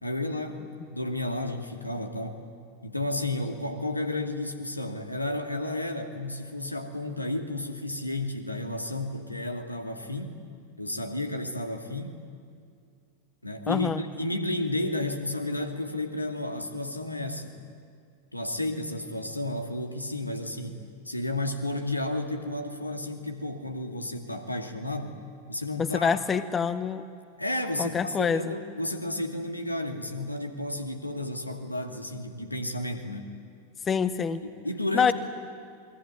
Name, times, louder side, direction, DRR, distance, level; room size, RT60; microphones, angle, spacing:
voice 1, 0.0-0.6 0.9-2.4 2.8-10.4 10.8-12.2 13.4-17.6 18.3-25.2 25.5-26.2 27.4-33.3 34.4-35.1, left 1 dB, 85° left, 5 dB, 2.4 m, -32 dB
voice 2, 13.7-14.0 25.8-27.0 27.8-28.5 33.9-34.4 34.9-35.1, left 6 dB, 20° left, 14 dB, 1.0 m, -26 dB
28.0 x 21.0 x 9.7 m, 2.3 s
figure-of-eight pair, 90°, 0 cm